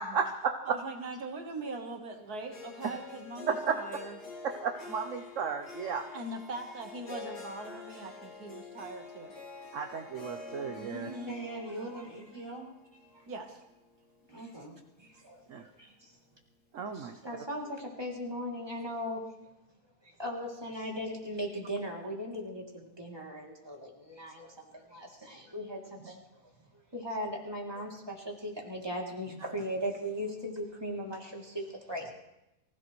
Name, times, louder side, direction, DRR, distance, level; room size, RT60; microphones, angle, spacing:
voice 1, 0.0-0.8 3.5-3.8 4.4-6.0 9.7-11.1 15.5-15.6 16.7-17.2, right 6 dB, 55° right, 5 dB, 1.1 m, -33 dB
voice 2, 0.7-4.2 6.1-9.3 10.7-11.4 13.3-13.6, right 2 dB, 70° right, 4 dB, 1.9 m, -41 dB
Harp, 2.5-14.7, left 4 dB, 85° left, 2.8 m, -47 dB
voice 3, 11.3-12.6 14.3-14.7 26.0-26.1 29.2-29.4, right 2 dB, 15° left, -4 dB, 5.7 m, -41 dB
voice 4, 15.2-15.9 16.9-19.2 20.0-26.2 26.9-32.1, equal, 15° right, -2 dB, 3.0 m, -38 dB
24.5 x 15.5 x 3.2 m, 0.90 s
omnidirectional pair, 1.7 m